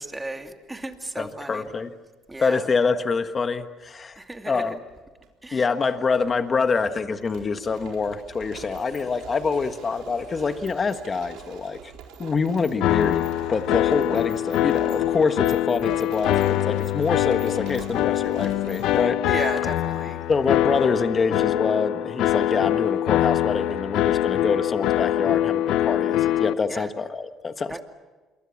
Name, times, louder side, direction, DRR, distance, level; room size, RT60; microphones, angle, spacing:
voice 1, 0.0-1.7 2.3-2.7 4.2-4.7 5.4-5.6 19.3-20.2 26.7-26.9 27.7-27.8, right 2 dB, 15° right, 5 dB, 2.7 m, -34 dB
voice 2, 1.2-1.9 2.4-4.2 4.5-4.8 5.5-11.8 12.2-19.4 20.3-27.8, left 4 dB, 35° left, 9 dB, 1.4 m, -26 dB
sound 1, 3.2-3.5 4.5-5.3 5.5-5.6 6.1-19.0, right 7 dB, 80° right, 4.1 m, -43 dB
sound 2, 12.8-26.5, left 13 dB, 80° left, 0.7 m, -23 dB
27.0 x 23.0 x 7.3 m, 1.2 s
cardioid pair, 95°, 0 cm